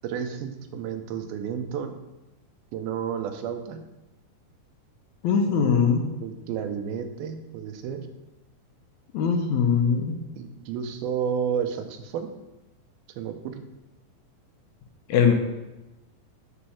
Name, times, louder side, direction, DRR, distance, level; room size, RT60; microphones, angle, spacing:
voice 1, 0.0-2.0 2.7-3.8 5.5-5.8 6.2-8.1 10.4-12.3 13.2-13.7, right 7 dB, 85° right, 7 dB, 2.7 m, -31 dB
voice 2, 5.2-6.0 9.1-10.2 15.1-15.3, left 6 dB, 75° left, 4 dB, 1.8 m, -21 dB
8.6 x 4.4 x 7.0 m, 1.0 s
omnidirectional pair, 4.2 m